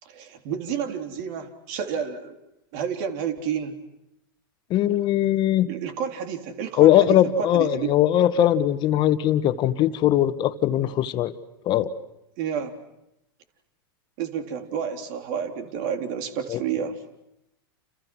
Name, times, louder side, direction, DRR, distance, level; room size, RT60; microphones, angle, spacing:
voice 1, 0.0-2.4 2.7-3.8 5.7-7.9 12.4-12.7 14.2-17.0, right 7 dB, 55° right, 5 dB, 3.7 m, -30 dB
voice 2, 4.7-5.7 6.8-11.3 11.6-11.9 16.5-16.6, left 12 dB, 40° left, 12 dB, 1.6 m, -20 dB
30.0 x 29.0 x 6.3 m, 0.86 s
hypercardioid pair, 110°, 12 cm